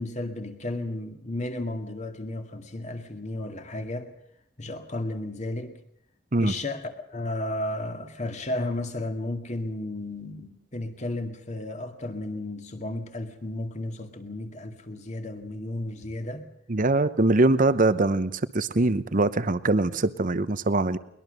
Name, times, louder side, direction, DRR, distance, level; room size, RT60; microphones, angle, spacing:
voice 1, 0.0-4.1 4.6-5.7 6.4-16.4, left 1 dB, 35° left, 6 dB, 2.1 m, -33 dB
voice 2, 16.7-21.0, right 2 dB, 40° right, 14 dB, 0.8 m, -23 dB
22.0 x 20.5 x 6.7 m, 0.74 s
head